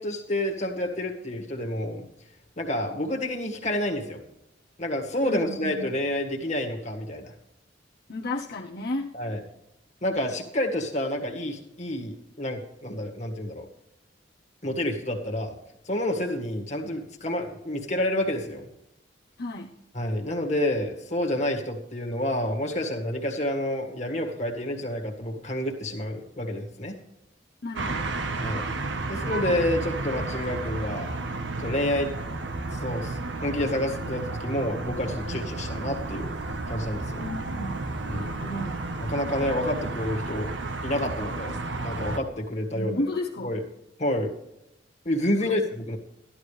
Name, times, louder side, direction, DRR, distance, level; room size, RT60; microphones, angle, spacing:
voice 1, 0.0-2.1 2.6-4.2 4.8-7.3 9.1-9.4 10.0-13.7 14.6-15.5 15.9-18.7 19.9-26.9 28.4-28.7 29.1-31.1 31.6-32.1 32.7-36.3 36.7-37.2 38.1-38.3 39.1-40.5 40.8-43.1 43.4-43.6 44.0-44.3 45.1-46.0, left 1 dB, 40° left, 2 dB, 1.8 m, -29 dB
voice 2, 5.2-5.9 8.1-9.1 19.4-19.7 27.6-28.1 37.2-38.8 42.7-43.6 45.4-45.6, left 1 dB, 60° left, -2 dB, 0.9 m, -33 dB
sound 1, 27.8-42.2, right 2 dB, 80° right, 1.1 m, -32 dB
13.5 x 11.5 x 3.3 m, 0.87 s
head